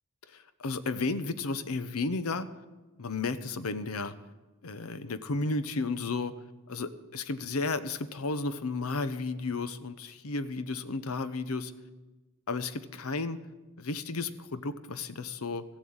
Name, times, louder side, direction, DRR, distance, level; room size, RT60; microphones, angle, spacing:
voice 1, 0.3-2.5 3.0-4.1 4.6-6.3 6.7-11.7 12.5-13.4 13.8-15.6, left 3 dB, 75° left, 13 dB, 0.8 m, -33 dB
15.0 x 7.3 x 8.8 m, 1.2 s
head